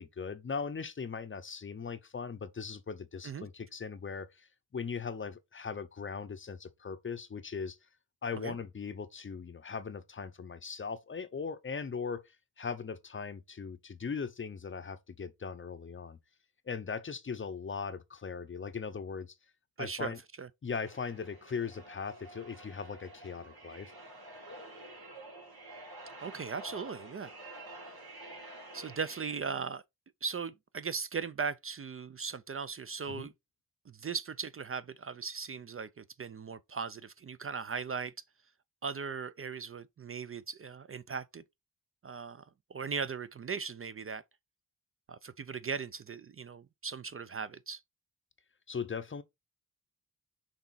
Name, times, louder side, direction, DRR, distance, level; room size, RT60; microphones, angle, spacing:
voice 1, 0.0-4.5 4.7-7.8 8.2-16.2 16.7-19.3 19.8-20.2 20.6-23.9 33.1-33.3 48.7-49.2, left 5 dB, 35° left, 0.6 m, -39 dB
voice 2, 19.8-20.5 26.2-27.3 27.8-27.9 28.7-29.8 30.2-33.3 33.9-38.1 38.8-41.4 42.0-44.2 45.1-47.8, right 5 dB, 35° right, 0.4 m, -38 dB
sound 1, 20.8-29.4, right 1 dB, 80° right, 3.7 m, -49 dB
6.2 x 4.0 x 4.0 m
wide cardioid pair, 135°, 37 cm